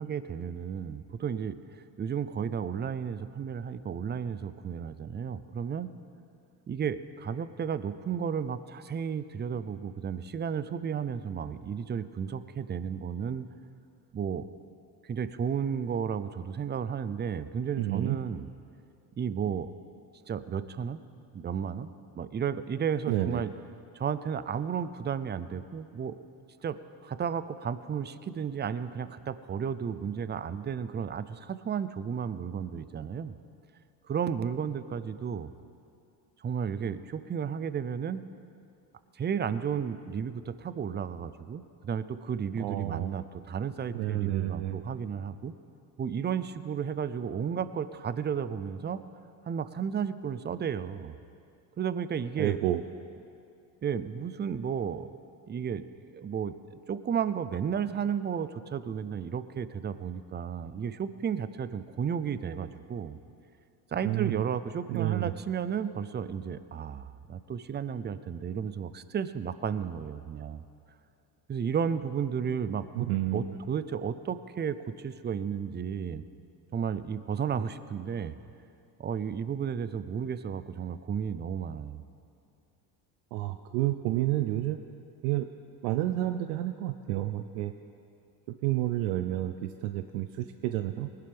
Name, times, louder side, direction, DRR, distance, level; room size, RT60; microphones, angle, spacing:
voice 1, 0.0-1.6 2.0-5.9 6.7-13.5 14.1-14.4 15.1-18.5 19.2-19.7 20.3-21.0 21.3-21.9 22.2-23.5 23.9-26.1 26.6-26.8 27.0-33.3 34.1-35.5 36.4-38.2 39.2-45.5 46.0-49.0 49.5-51.1 51.8-52.6 53.8-55.1 55.5-55.8 56.1-63.2 63.9-70.6 71.5-76.2 76.7-78.3 79.0-82.0, right 7 dB, 20° right, 14 dB, 0.5 m, -33 dB
voice 2, 17.8-18.2 23.1-23.4 42.5-43.1 43.9-44.8 52.4-52.8 64.0-64.4 64.9-65.3 72.9-73.5 83.3-85.5 85.8-87.7 88.6-91.1, right 14 dB, 85° right, 8 dB, 0.6 m, -30 dB
19.5 x 11.5 x 3.5 m, 2.5 s
supercardioid pair, 75°, 50 cm